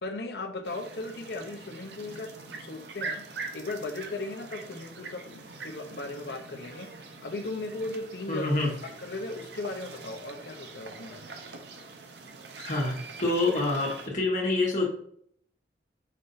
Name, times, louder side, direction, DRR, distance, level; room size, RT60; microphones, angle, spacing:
voice 1, 0.0-3.3 3.5-6.9 7.2-8.6 8.8-11.2, left 2 dB, 65° left, 6 dB, 0.6 m, -37 dB
sound 1, 0.6-14.1, right 4 dB, 70° right, 0.6 m, -43 dB
voice 2, 8.3-8.7 12.6-14.9, left 2 dB, 45° left, -2 dB, 1.3 m, -27 dB
5.3 x 2.6 x 3.9 m, 0.65 s
head